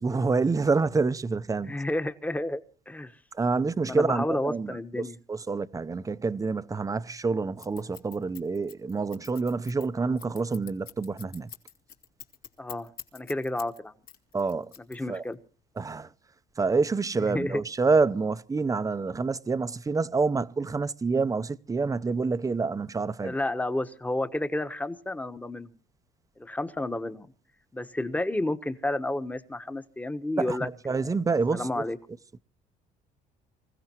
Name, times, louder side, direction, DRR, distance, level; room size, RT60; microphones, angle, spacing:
voice 1, 0.0-1.7 3.4-4.8 5.3-11.5 14.3-14.7 15.1-15.2 15.8-16.1 16.6-23.3 30.4-31.8, right 4 dB, 20° right, 0.8 m, -27 dB
voice 2, 1.6-3.2 3.8-5.2 12.6-13.9 14.9-15.4 17.2-17.6 23.2-25.8 26.4-27.3 27.7-31.1 31.5-32.0, left 1 dB, 10° left, 1.2 m, -31 dB
Scissors, 7.6-13.8 14.1-15.3, left 8 dB, 60° left, 2.4 m, -45 dB
26.0 x 15.5 x 3.0 m
cardioid pair, 110°, 17 cm